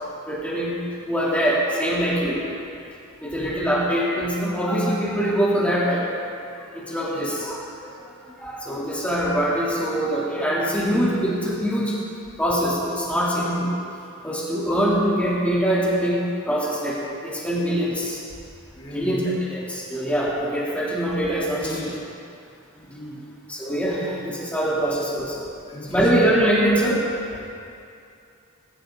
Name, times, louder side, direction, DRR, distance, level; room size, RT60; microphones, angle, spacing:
voice 1, 0.3-0.7 1.1-2.4 3.2-6.0 6.7-7.9 8.2-12.0 12.4-13.7 14.2-16.2 16.5-17.0 17.2-18.2 18.9-19.2 19.5-21.8 23.5-25.5 25.9-27.0, equal, 5° left, -8 dB, 3.2 m, -23 dB
voice 2, 3.3-3.7 7.1-7.4 18.8-19.2 20.4-20.6 21.6-22.1 22.7-23.4 24.0-24.2 25.7-26.1 27.3-27.5, left 1 dB, 25° left, -5 dB, 3.1 m, -38 dB
22.0 x 15.5 x 4.0 m, 2.5 s
head